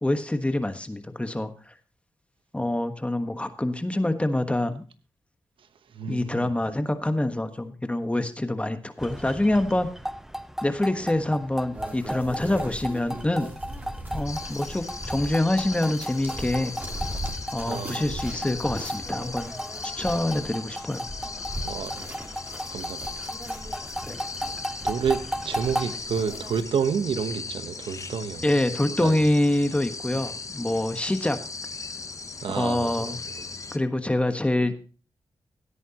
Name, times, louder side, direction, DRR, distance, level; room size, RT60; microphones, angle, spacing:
voice 1, 0.0-1.5 2.5-4.8 6.1-9.9 10.6-13.5 14.1-16.7 17.5-19.5 20.0-21.0 24.1-24.2 28.4-31.4 32.5-33.2 33.7-34.7, left 1 dB, 15° left, 1.3 m, -26 dB
voice 2, 5.9-6.5 17.7-18.2 21.6-22.1 22.7-23.1 24.8-25.2 25.4-28.5 29.0-29.2 32.4-33.1 33.4-33.5, right 6 dB, 80° right, 1.0 m, -29 dB
sound 1, 9.0-26.0, equal, 5° right, 0.6 m, -36 dB
sound 2, 11.7-26.6, right 1 dB, 20° right, 3.2 m, -39 dB
sound 3, 14.3-33.8, left 4 dB, 40° left, 0.8 m, -38 dB
16.5 x 9.1 x 2.9 m
cardioid pair, 70°, 9 cm